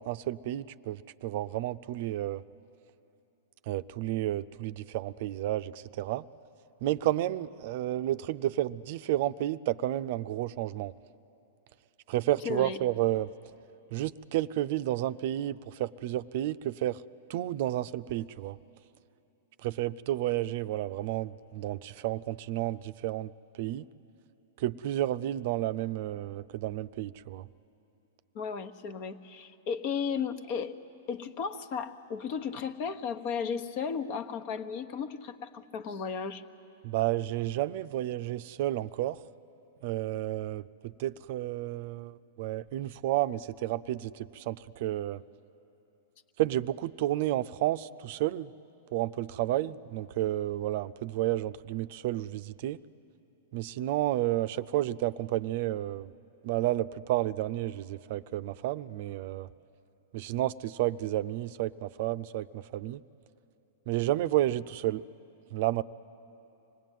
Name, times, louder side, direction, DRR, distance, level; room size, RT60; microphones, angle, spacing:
voice 1, 0.0-2.4 3.7-6.2 6.8-10.9 12.1-13.3 13.9-17.0 17.3-18.6 19.6-23.3 23.6-23.8 24.6-27.5 36.8-39.2 39.8-40.6 41.0-45.2 46.4-48.5 48.9-52.8 53.5-56.1 56.4-59.5 60.1-63.0 63.9-65.0 65.5-65.8, right 14 dB, 55° right, 13 dB, 0.5 m, -31 dB
voice 2, 12.4-12.8 28.3-30.7 31.1-36.4, left 6 dB, 50° left, 11 dB, 1.2 m, -34 dB
25.5 x 19.0 x 9.2 m, 2.8 s
hypercardioid pair, 120°, 0 cm